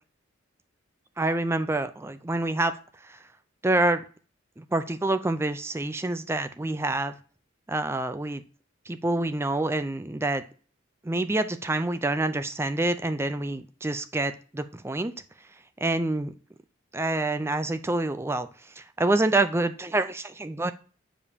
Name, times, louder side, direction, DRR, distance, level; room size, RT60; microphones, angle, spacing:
voice 1, 1.2-2.8 3.0-3.2 3.6-4.0 4.6-7.2 7.7-8.4 8.9-10.4 11.0-15.1 15.8-16.3 16.9-20.7, right 2 dB, 10° right, 11 dB, 0.4 m, -27 dB
7.0 x 5.0 x 2.7 m, 0.40 s
head